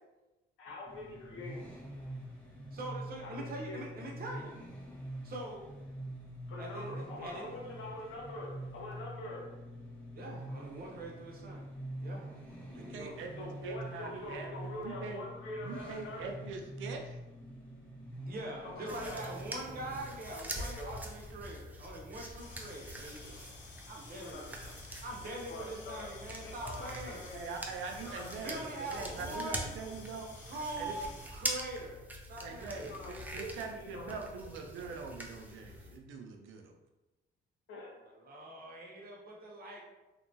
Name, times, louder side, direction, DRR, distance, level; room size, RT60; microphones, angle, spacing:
voice 1, 0.6-1.6 3.2-3.8 6.5-9.5 13.4-16.2 18.6-19.3 20.8-21.0 24.1-24.4 25.2-26.1 26.4-26.9 27.2-27.5 28.0-28.2 28.5-28.9 32.8-33.1 33.4-34.2 34.4-34.9 37.7-37.9, left 2 dB, 85° left, -3 dB, 0.9 m, -45 dB
sound 1, 0.8-20.2, right 1 dB, 5° left, 0.8 m, -45 dB
voice 2, 2.7-4.6 5.2-5.7 6.6-7.5 10.1-11.6 12.0-12.3 12.7-13.2 18.3-23.4 23.9-24.6 25.0-27.3 28.4-29.7 30.3-32.0 32.3-33.0 38.2-39.9, right 1 dB, 50° right, -1 dB, 0.8 m, -43 dB
voice 3, 12.7-15.2 15.6-17.2 27.3-30.3 30.8-30.9 32.4-36.7, right 4 dB, 80° right, 2 dB, 0.5 m, -43 dB
sound 2, 18.9-36.0, right 1 dB, 10° right, 0.4 m, -44 dB
sound 3, 22.4-31.3, left 3 dB, 65° left, 0.6 m, -53 dB
2.8 x 2.2 x 2.7 m, 1.1 s
cardioid pair, 90°, 20 cm